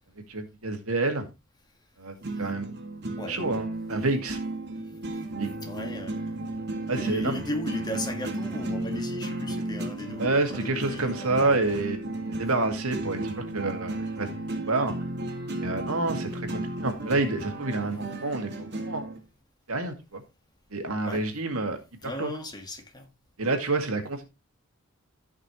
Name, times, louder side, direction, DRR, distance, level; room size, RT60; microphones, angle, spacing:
voice 1, 0.3-1.3 2.0-2.7 3.3-4.4 5.4-5.5 6.9-7.4 10.2-12.0 12.4-14.3 14.7-14.9 15.6-19.0 19.7-20.2 20.7-21.8 22.2-22.3 23.4-24.2, right 2 dB, 80° right, 2.2 m, -28 dB
sound 1, 2.2-19.2, right 1 dB, 50° right, 2.3 m, -34 dB
voice 2, 5.6-6.3 6.9-11.6 21.0-21.3 22.0-23.1, left 1 dB, 20° left, 1.8 m, -36 dB
14.5 x 5.9 x 3.2 m
head